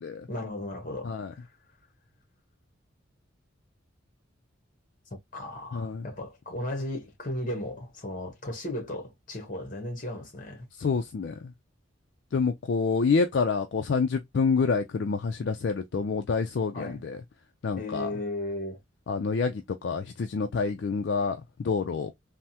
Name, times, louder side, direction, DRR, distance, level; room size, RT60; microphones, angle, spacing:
voice 1, 0.3-1.5 5.3-10.7 16.7-17.0 17.8-18.8, left 1 dB, 40° left, 1.0 m, -35 dB
voice 2, 5.7-6.1 10.8-11.5 12.3-17.2 17.6-18.1 19.1-22.2, left 4 dB, 60° left, 0.4 m, -27 dB
3.4 x 2.1 x 2.7 m
head